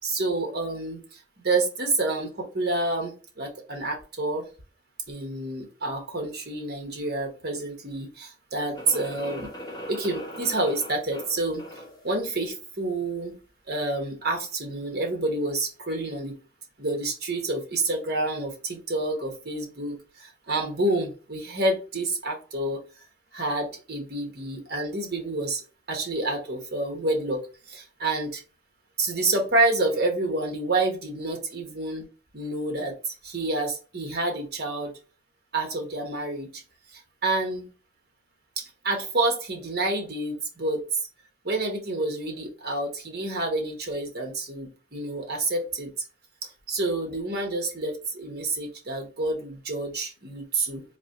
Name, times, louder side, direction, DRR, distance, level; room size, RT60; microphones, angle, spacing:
voice 1, 0.0-3.1 3.4-4.4 5.1-9.5 9.9-11.6 12.0-13.3 13.7-16.3 16.8-22.8 23.3-25.6 25.9-27.4 27.7-28.4 29.0-32.0 32.3-34.9 35.5-36.5 37.2-37.7 38.6-40.8 41.4-45.9 46.7-50.8, right 2 dB, 50° right, 2 dB, 1.1 m, -28 dB
sound 1, 8.7-12.1, equal, 20° left, 0.9 m, -40 dB
3.9 x 2.8 x 2.9 m, 0.34 s
head